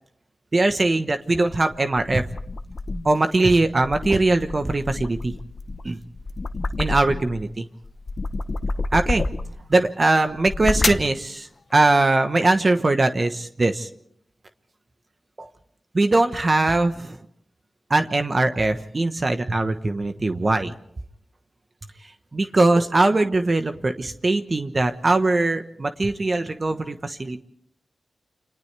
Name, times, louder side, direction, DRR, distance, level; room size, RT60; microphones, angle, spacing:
voice 1, 0.5-2.2 3.0-5.3 5.8-6.0 6.8-7.6 8.9-9.3 9.7-13.9 15.4-15.5 15.9-17.2 17.9-20.7 22.3-27.4, right 2 dB, 40° right, 7 dB, 1.1 m, -21 dB
sound 1, 1.3-3.2 3.7-7.4 7.8-9.7 10.3-11.1, left 3 dB, 50° left, 1.0 m, -29 dB
29.0 x 26.5 x 3.4 m, 0.69 s
cardioid pair, 65°, 0 cm